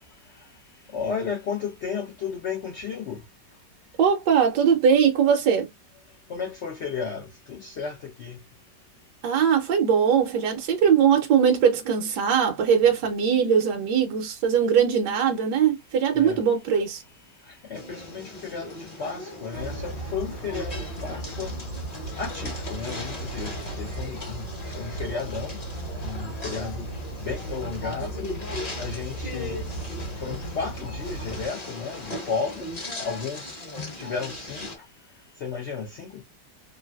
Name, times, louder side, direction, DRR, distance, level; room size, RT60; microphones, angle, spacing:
voice 1, 0.9-3.2 6.3-8.4 16.1-16.4 17.5-21.5 22.2-24.5 24.7-25.6 26.0-26.9 27.2-28.3 28.8-29.6 30.2-32.7 33.0-33.6 34.0-34.8 35.4-36.2, left 5 dB, 80° left, 0.6 m, -33 dB
voice 2, 4.0-5.7 9.2-17.0, right 7 dB, 75° right, 1.2 m, -21 dB
sound 1, 17.7-34.8, left 1 dB, 35° left, 0.7 m, -38 dB
sound 2, 19.5-31.5, right 2 dB, 55° left, 1.2 m, -36 dB
3.2 x 2.5 x 2.2 m
omnidirectional pair, 1.9 m